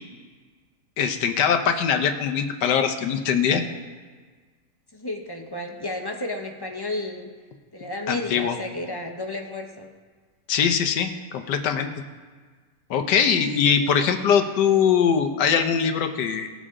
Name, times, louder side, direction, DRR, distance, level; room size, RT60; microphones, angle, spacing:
voice 1, 1.0-3.6 8.1-8.6 10.5-11.9 12.9-16.5, left 7 dB, 90° left, 7 dB, 1.5 m, -22 dB
voice 2, 4.9-7.3 7.7-9.9, left 1 dB, 25° left, 3 dB, 0.5 m, -32 dB
19.0 x 7.2 x 3.7 m, 1.5 s
omnidirectional pair, 1.8 m